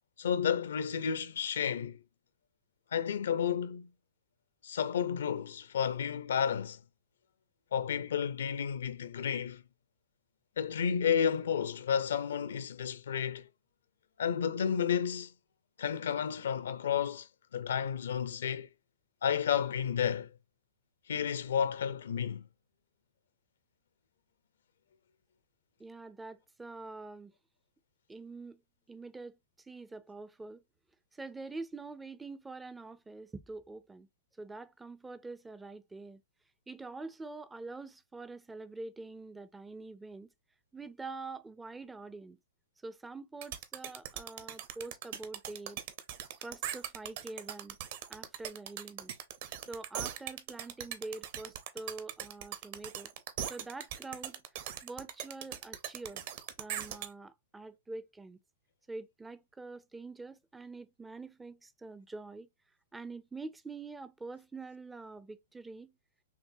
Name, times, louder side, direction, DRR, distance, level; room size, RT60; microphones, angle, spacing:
voice 1, 0.2-2.0 2.9-3.9 4.6-6.8 7.7-9.6 10.6-13.4 14.2-15.3 15.8-17.3 17.5-18.7 19.2-20.3 21.1-22.4, left 8 dB, 75° left, 0.6 m, -31 dB
voice 2, 25.8-27.3 28.1-28.6 28.9-30.6 31.1-34.1 34.4-36.2 36.7-40.3 40.7-42.4 42.8-45.8 46.4-47.8 48.1-49.1 49.7-53.1 53.5-54.4 54.8-56.2 56.6-58.4 58.9-62.5 62.9-65.9, right 3 dB, 10° right, 0.4 m, -45 dB
sound 1, 43.4-57.1, right 11 dB, 50° right, 0.7 m, -40 dB
5.8 x 2.1 x 2.6 m
hypercardioid pair, 140°, 0 cm